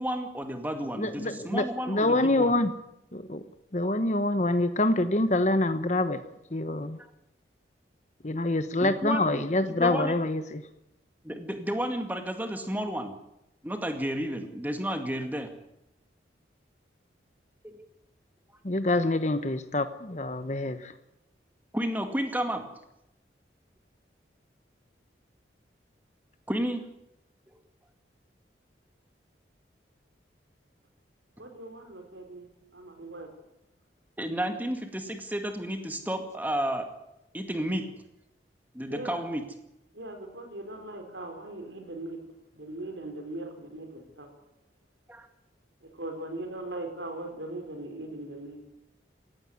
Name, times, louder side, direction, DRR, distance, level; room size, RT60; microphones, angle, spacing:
voice 1, 0.0-2.5 8.8-10.2 11.2-13.1 13.6-15.5 17.6-17.9 21.7-22.6 26.5-26.8 34.2-36.9 37.3-37.9 38.7-39.4 45.1-45.3, equal, 10° right, 6 dB, 2.2 m, -32 dB
voice 2, 1.0-2.7 3.1-3.4 3.7-6.2 6.5-7.0 8.2-10.6 18.6-20.9, left 2 dB, 40° left, 11 dB, 1.1 m, -26 dB
voice 3, 31.4-33.3 38.9-39.2 39.9-42.2 42.5-44.3 45.8-48.6, right 2 dB, 80° right, 5 dB, 4.8 m, -40 dB
18.0 x 15.5 x 9.7 m, 0.85 s
head